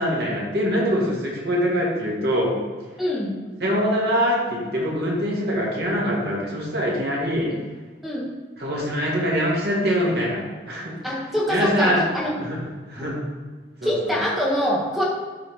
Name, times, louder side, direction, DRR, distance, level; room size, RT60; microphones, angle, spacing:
voice 1, 0.0-2.6 3.6-7.5 8.6-11.0 11.5-12.1 12.4-13.2 13.8-14.2, equal, 65° right, -3 dB, 2.0 m, -24 dB
voice 2, 3.0-3.3 8.0-8.3 11.0-12.3 13.0-13.1 13.8-15.0, equal, ahead, -5 dB, 1.4 m, -24 dB
11.5 x 4.0 x 3.5 m, 1.4 s
head